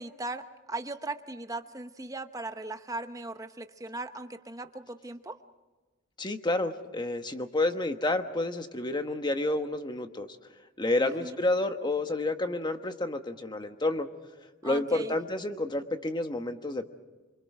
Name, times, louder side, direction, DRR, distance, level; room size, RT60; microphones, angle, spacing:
voice 1, 0.0-5.4 11.0-11.4 14.6-15.1, right 2 dB, 15° right, 8 dB, 1.0 m, -38 dB
voice 2, 6.2-10.3 10.8-14.1 14.6-16.9, left 2 dB, 20° left, 7 dB, 1.3 m, -29 dB
27.0 x 25.0 x 4.9 m, 1.2 s
head